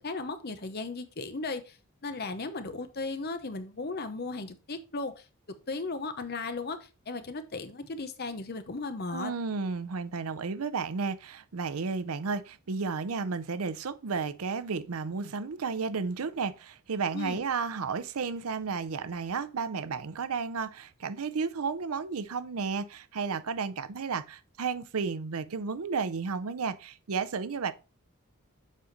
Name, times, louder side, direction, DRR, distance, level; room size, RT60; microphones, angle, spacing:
voice 1, 0.0-1.8 2.0-5.2 5.7-9.3 17.1-17.4, left 3 dB, 45° left, 0.9 m, -36 dB
voice 2, 9.1-27.7, right 5 dB, 80° right, 0.6 m, -33 dB
7.4 x 5.0 x 4.0 m
head